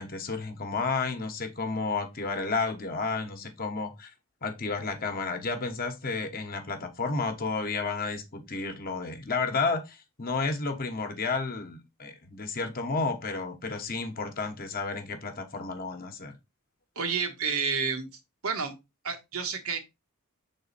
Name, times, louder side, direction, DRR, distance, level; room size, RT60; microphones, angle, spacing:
voice 1, 0.0-4.1 4.4-16.3, left 4 dB, 45° left, 1.1 m, -31 dB
voice 2, 16.9-18.1 18.4-18.8 19.0-19.8, right 5 dB, 80° right, 1.4 m, -30 dB
6.2 x 4.0 x 4.0 m
head